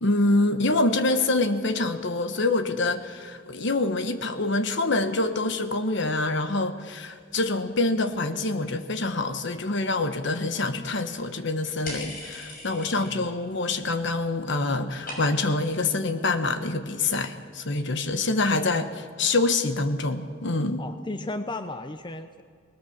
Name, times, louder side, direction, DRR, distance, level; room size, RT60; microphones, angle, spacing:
voice 1, 0.0-20.8, left 2 dB, 65° left, 9 dB, 1.3 m, -26 dB
sound 1, 11.8-13.4 13.7-14.3 14.5-15.6, left 2 dB, 45° left, 6.4 m, -40 dB
voice 2, 12.7-13.3 20.8-22.4, left 2 dB, 25° left, 9 dB, 0.7 m, -35 dB
20.0 x 19.5 x 7.3 m, 2.1 s
head